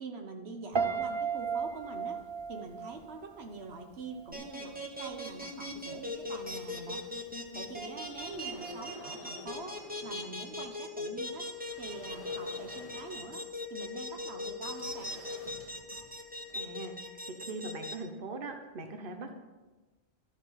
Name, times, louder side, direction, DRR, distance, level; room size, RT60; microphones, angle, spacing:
voice 1, 0.0-2.2 2.5-7.1 7.5-9.8 10.0-11.5 11.8-13.4 13.7-15.2, right 3 dB, 85° right, 4 dB, 1.4 m, -44 dB
Piano, 0.7-3.8 4.1-4.6, right 6 dB, 35° right, 0.5 m, -34 dB
sound 1, 4.3-17.9, left 1 dB, 10° right, 1.4 m, -39 dB
sound 2, 6.4-7.4 7.8-10.8 11.3-16.8, left 2 dB, 35° left, 1.2 m, -53 dB
voice 2, 16.5-16.9 17.3-19.4, right 3 dB, 60° right, 5 dB, 1.3 m, -41 dB
12.5 x 8.0 x 5.8 m, 1.2 s
omnidirectional pair, 1.0 m